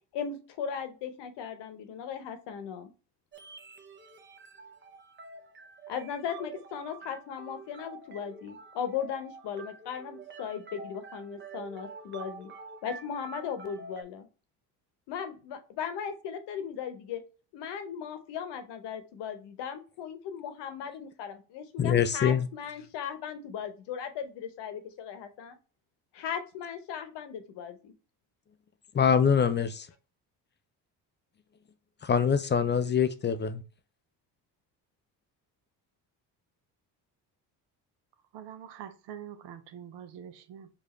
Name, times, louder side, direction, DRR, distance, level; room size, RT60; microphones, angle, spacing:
voice 1, 0.1-2.9 5.9-12.5 12.8-14.3 15.1-17.2 17.5-25.6 26.1-27.9, left 7 dB, 70° left, 0.9 m, -37 dB
sound 1, 3.3-14.0, right 4 dB, 25° right, 0.8 m, -47 dB
voice 2, 21.8-22.5 28.9-29.9 32.0-33.6, left 7 dB, 25° left, 0.4 m, -24 dB
voice 3, 38.3-40.7, right 9 dB, 70° right, 0.8 m, -45 dB
4.8 x 2.6 x 3.1 m
supercardioid pair, 80°, 44 cm